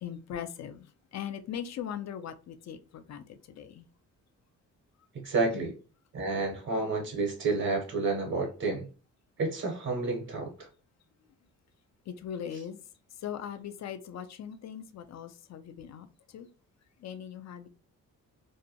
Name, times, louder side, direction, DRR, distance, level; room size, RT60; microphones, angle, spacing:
voice 1, 0.0-3.9 5.5-5.7 12.1-12.8 13.2-16.5 17.0-17.7, left 9 dB, 50° left, 10 dB, 0.5 m, -40 dB
voice 2, 5.1-5.7 6.1-8.9 9.4-10.7, right 3 dB, 50° right, 1 dB, 0.8 m, -30 dB
2.6 x 2.1 x 2.7 m, 0.36 s
supercardioid pair, 65°, 36 cm